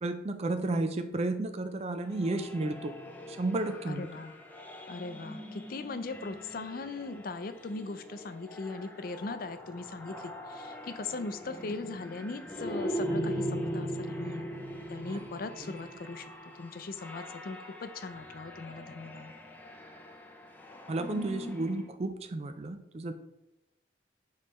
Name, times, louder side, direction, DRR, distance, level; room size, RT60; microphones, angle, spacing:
voice 1, 0.0-3.0 3.3-4.1 15.0-15.2 20.9-23.1, right 2 dB, 35° right, 8 dB, 0.4 m, -32 dB
sound 1, 2.1-21.9, equal, 10° left, 0.7 m, -40 dB
voice 2, 3.9-4.3 4.9-14.5 14.9-16.3 16.6-19.3, left 3 dB, 55° left, 10 dB, 0.5 m, -39 dB
7.1 x 3.2 x 4.3 m, 0.90 s
head